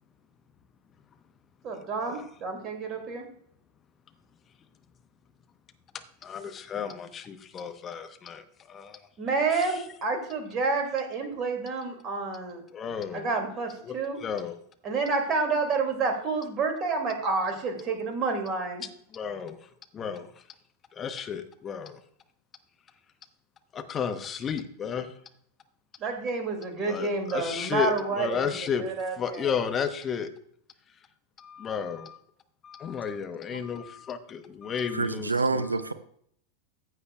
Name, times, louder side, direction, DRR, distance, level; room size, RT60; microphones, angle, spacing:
voice 1, 1.6-3.3 9.2-12.6 13.1-14.2 14.8-18.8 26.0-28.5 28.8-29.5, right 4 dB, 30° right, 4 dB, 2.4 m, -29 dB
voice 2, 6.2-9.1 9.5-9.8 12.7-13.3 13.8-14.6 19.1-19.6 19.9-20.4 20.9-22.0 23.7-25.1 26.8-28.9 29.2-30.3 31.4-32.2 32.6-35.7, left 7 dB, 25° left, 8 dB, 1.0 m, -33 dB
voice 3, 34.9-35.9, right 3 dB, 80° right, 14 dB, 0.5 m, -27 dB
15.0 x 8.1 x 2.3 m, 0.65 s
figure-of-eight pair, 90°, 0 cm